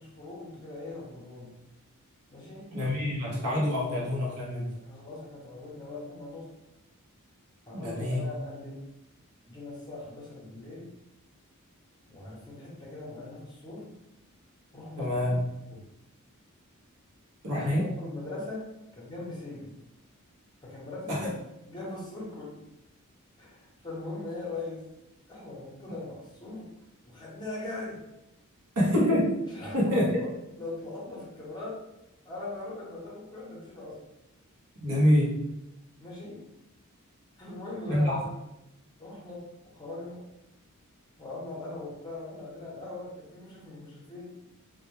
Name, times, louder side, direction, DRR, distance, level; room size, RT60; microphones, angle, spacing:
voice 1, 0.0-1.6 2.3-2.8 4.7-6.5 7.7-8.9 9.4-10.9 12.1-13.9 14.7-15.4 15.7-15.9 17.5-19.8 20.6-21.3 21.7-22.7 23.4-24.9 25.3-26.7 27.1-28.0 29.5-31.8 32.2-34.0 36.0-36.4 37.4-38.3 39.0-40.3 41.2-44.4, left 2 dB, 20° left, -5 dB, 0.7 m, -40 dB
voice 2, 2.7-4.8 7.7-8.2 15.0-15.4 17.4-17.9 21.1-21.3 28.8-29.3 29.7-30.1 34.8-35.5 37.9-38.2, left 1 dB, 75° right, -4 dB, 0.7 m, -26 dB
2.1 x 2.1 x 2.9 m, 0.89 s
head